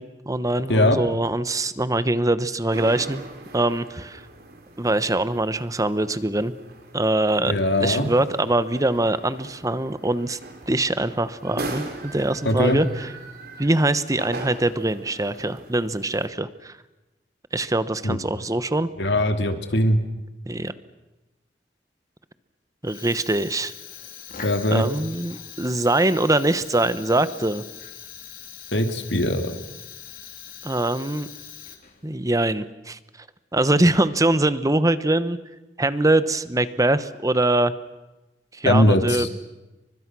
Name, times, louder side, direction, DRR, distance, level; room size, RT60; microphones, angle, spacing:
voice 1, 0.0-3.3 3.5-4.2 4.8-6.5 6.9-7.5 7.8-10.4 10.7-13.1 13.6-16.7 17.5-18.9 20.5-20.7 22.8-23.7 24.7-27.6 30.6-31.3 32.0-33.0 33.5-35.4 35.8-37.7 38.5-39.3, right 2 dB, 20° right, 14 dB, 1.1 m, -23 dB
voice 2, 0.7-1.1 7.5-8.1 12.4-12.8 18.0-18.2 19.0-20.0 24.4-24.8 28.7-29.5 38.6-39.3, left 1 dB, 70° left, 6 dB, 2.7 m, -20 dB
sound 1, 2.7-16.3, right 2 dB, 60° right, 3.8 m, -40 dB
Fire, 22.8-32.2, left 8 dB, 55° left, 3.4 m, -42 dB
30.0 x 24.5 x 6.2 m, 1.1 s
head